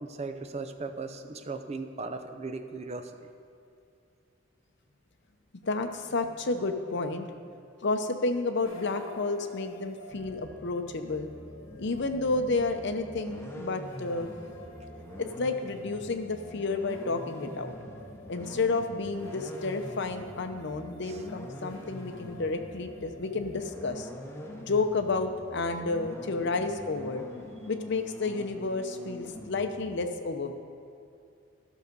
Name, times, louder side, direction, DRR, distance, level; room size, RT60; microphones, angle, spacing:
voice 1, 0.0-3.3 21.1-21.2, right 3 dB, 35° right, 7 dB, 0.5 m, -38 dB
voice 2, 5.6-7.4 7.8-11.3 11.8-14.3 15.2-17.7 18.3-24.1 24.6-27.2 27.7-30.5, left 3 dB, 60° left, 7 dB, 0.7 m, -31 dB
sound 1, 8.6-27.8, left 1 dB, 80° left, 1.3 m, -51 dB
sound 2, 10.1-30.0, left 1 dB, 15° left, 0.9 m, -45 dB
12.0 x 6.4 x 5.3 m, 2.5 s
head